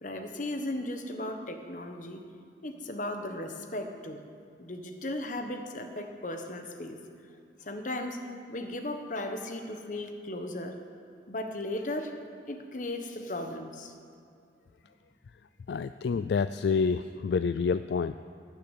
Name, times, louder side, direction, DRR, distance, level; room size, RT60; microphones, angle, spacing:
voice 1, 0.0-2.2 2.6-4.2 4.6-7.0 7.6-8.2 8.5-10.8 11.3-12.1 12.5-13.9, left 1 dB, 45° left, 6 dB, 1.1 m, -36 dB
voice 2, 15.7-18.2, left 5 dB, 65° left, 12 dB, 0.3 m, -28 dB
18.5 x 6.6 x 8.1 m, 2.5 s
head